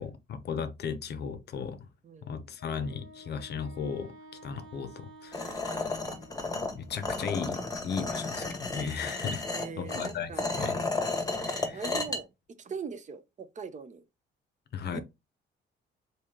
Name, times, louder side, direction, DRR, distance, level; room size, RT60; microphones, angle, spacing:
voice 1, 0.0-1.9 2.2-4.2 4.4-6.0 6.7-9.5 9.8-10.8 11.4-11.8 14.7-15.0, left 6 dB, 55° left, 0.6 m, -36 dB
voice 2, 2.0-2.5 9.4-10.5 11.7-12.3 12.6-14.0 14.9-15.0, right 5 dB, 40° right, 0.6 m, -41 dB
Wind instrument woodwind instrument, 2.6-7.2, right 1 dB, 70° right, 1.6 m, -52 dB
sound 1, 5.3-12.2, left 3 dB, 15° left, 0.9 m, -33 dB
3.1 x 2.7 x 3.6 m
cardioid pair, 90°, 20 cm